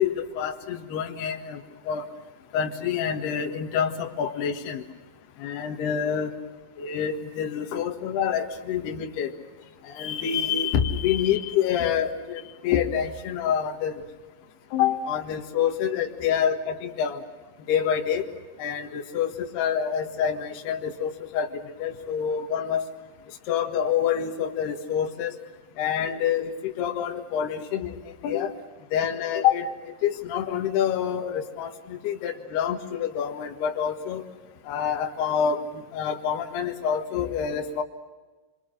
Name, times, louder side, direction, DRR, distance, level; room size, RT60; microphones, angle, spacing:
voice 1, 0.0-2.1 2.5-4.8 5.4-6.3 6.8-9.3 9.8-14.0 14.7-17.2 17.7-18.3 18.6-22.9 23.5-25.4 25.8-28.5 28.9-34.2 34.7-37.8, left 8 dB, 65° left, 0 dB, 3.5 m, -27 dB
30.0 x 24.5 x 6.6 m, 1.3 s
omnidirectional pair, 5.3 m